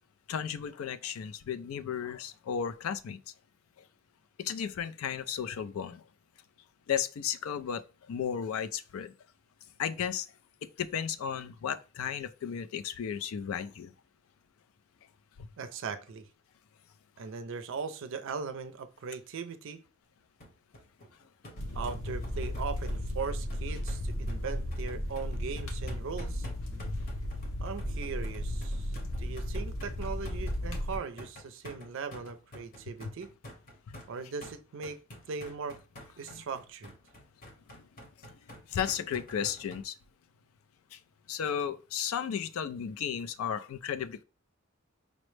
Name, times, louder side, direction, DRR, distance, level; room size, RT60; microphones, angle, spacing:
voice 1, 0.3-3.2 4.4-6.0 6.9-9.1 9.8-10.3 10.8-13.9 15.4-15.5 26.9-27.0 33.9-34.0 38.7-40.0 40.9-41.0 41.3-44.2, left 8 dB, 85° left, 0.4 m, -34 dB
voice 2, 15.6-16.3 17.2-19.8 21.7-26.5 27.6-33.3 34.1-35.0 35.3-35.8 36.2-36.9, right 5 dB, 65° right, 0.4 m, -39 dB
sound 1, 20.4-39.8, equal, 45° left, 0.9 m, -49 dB
sound 2, 21.6-31.0, left 1 dB, 65° left, 0.7 m, -35 dB
5.1 x 2.0 x 3.2 m
head